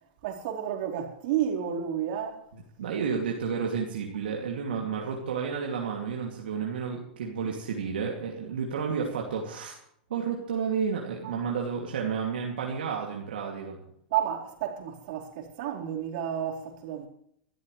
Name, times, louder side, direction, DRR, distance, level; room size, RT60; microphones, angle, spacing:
voice 1, 0.2-2.4 11.2-11.3 14.1-17.1, right 9 dB, 65° right, 4.4 m, -31 dB
voice 2, 2.8-9.8 10.1-13.8, right 6 dB, 85° right, 2.7 m, -31 dB
24.0 x 13.5 x 3.3 m
hypercardioid pair, 130°, 5 cm